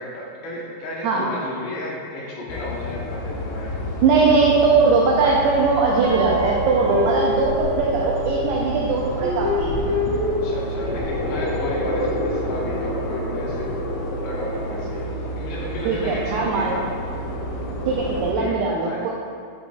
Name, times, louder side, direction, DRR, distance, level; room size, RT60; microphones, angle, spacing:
voice 1, 0.0-3.7 4.2-4.4 4.7-4.8 10.4-13.6 14.2-15.0 15.4-16.8 18.4-19.1, left 1 dB, 70° left, -5 dB, 2.8 m, -33 dB
sound 1, 2.5-18.3, equal, 85° left, 3.4 m, -29 dB
voice 2, 4.0-9.7 15.9-16.8 17.9-19.1, right 4 dB, 85° right, -3 dB, 2.3 m, -20 dB
Guitar, 6.0-8.5 9.2-11.1, left 2 dB, 70° right, 2.5 m, -26 dB
11.0 x 5.7 x 2.3 m, 2.2 s
omnidirectional pair, 5.5 m